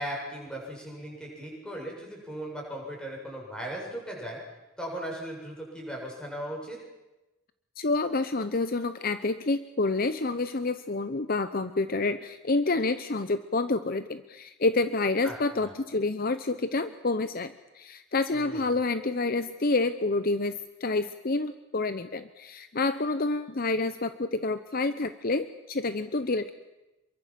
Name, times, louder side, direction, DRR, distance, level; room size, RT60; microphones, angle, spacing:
voice 1, 0.0-4.4 4.8-6.8 15.2-15.7 18.3-18.7, right 1 dB, 5° left, -1 dB, 7.7 m, -38 dB
voice 2, 7.8-26.5, left 3 dB, 45° left, 11 dB, 0.8 m, -28 dB
27.5 x 23.0 x 7.6 m, 1.0 s
head